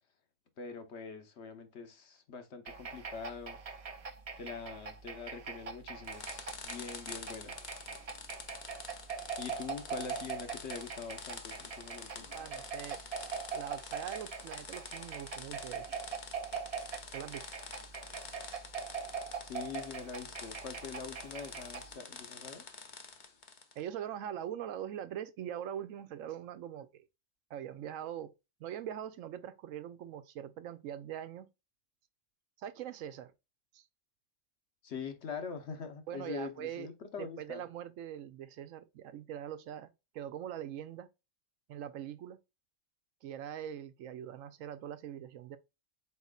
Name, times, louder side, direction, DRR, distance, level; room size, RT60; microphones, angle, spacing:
voice 1, 0.6-4.1 4.4-7.5 9.4-12.3 19.4-22.7 34.8-37.6, left 5 dB, 60° left, 1.1 m, -44 dB
sound 1, 2.7-22.0, right 6 dB, 45° right, 0.4 m, -43 dB
sound 2, 6.0-23.8, left 5 dB, 45° left, 0.8 m, -48 dB
voice 2, 12.3-13.0 13.5-15.8 17.1-17.4 23.8-27.1 27.5-28.3 28.6-31.5 32.6-33.3 33.7-33.8 36.1-36.9 37.4-41.1 41.7-42.4 43.2-45.6, right 10 dB, 85° right, 1.0 m, -42 dB
4.4 x 4.2 x 2.3 m
omnidirectional pair, 1.3 m